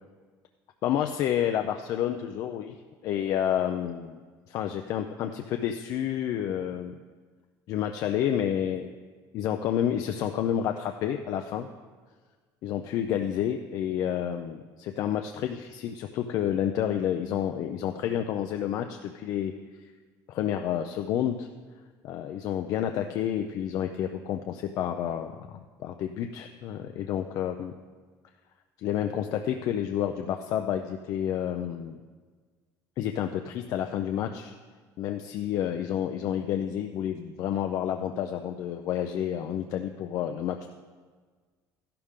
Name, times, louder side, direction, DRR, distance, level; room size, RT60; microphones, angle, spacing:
voice 1, 0.8-2.8 3.0-4.2 4.5-6.9 7.7-8.9 9.3-11.7 12.6-19.5 20.3-21.5 22.0-27.7 28.8-32.0 33.0-34.5 35.0-40.7, left 10 dB, 50° left, 6 dB, 0.5 m, -29 dB
13.0 x 11.5 x 3.7 m, 1.5 s
cardioid pair, 165°, 8 cm